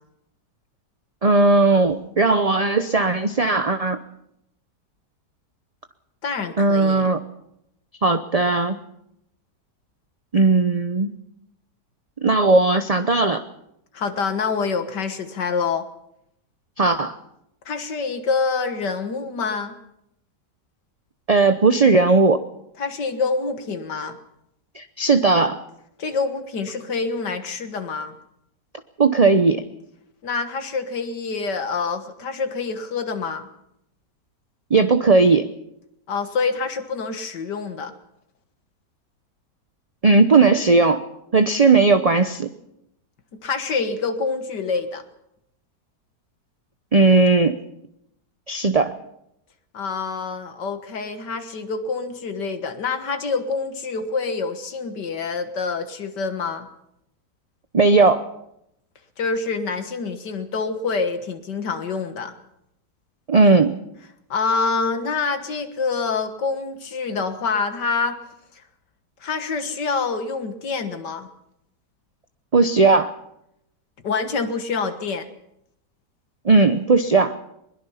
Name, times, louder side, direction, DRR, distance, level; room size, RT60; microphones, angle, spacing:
voice 1, 1.2-4.0 6.6-7.2 8.0-8.8 10.3-11.1 12.2-13.4 16.8-17.2 21.3-22.4 24.8-25.6 29.0-29.6 34.7-35.5 40.0-41.0 41.3-42.5 46.9-47.6 48.5-48.9 57.7-58.3 63.3-63.7 72.5-73.1 76.4-77.4, right 3 dB, 35° right, 9 dB, 0.6 m, -17 dB
voice 2, 6.2-7.1 13.9-15.9 17.7-19.8 22.8-24.2 26.0-28.2 30.2-33.5 36.1-37.9 43.4-45.0 49.7-56.7 59.2-62.3 64.3-68.2 69.2-71.3 74.0-75.3, left 4 dB, 75° left, 8 dB, 2.1 m, -26 dB
21.5 x 21.0 x 5.7 m, 0.79 s
omnidirectional pair, 1.9 m